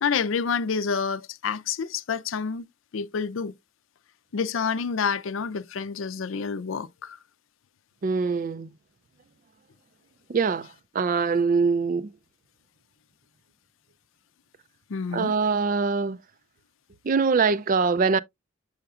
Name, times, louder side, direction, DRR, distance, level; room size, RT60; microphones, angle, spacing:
voice 1, 0.0-2.6 2.9-3.5 4.3-7.2 14.9-15.3, left 6 dB, 80° left, 0.5 m, -28 dB
voice 2, 8.0-8.7 10.3-10.7 10.9-12.1 15.1-16.2 17.0-18.2, right 5 dB, 45° right, 0.4 m, -23 dB
7.8 x 5.7 x 2.4 m
head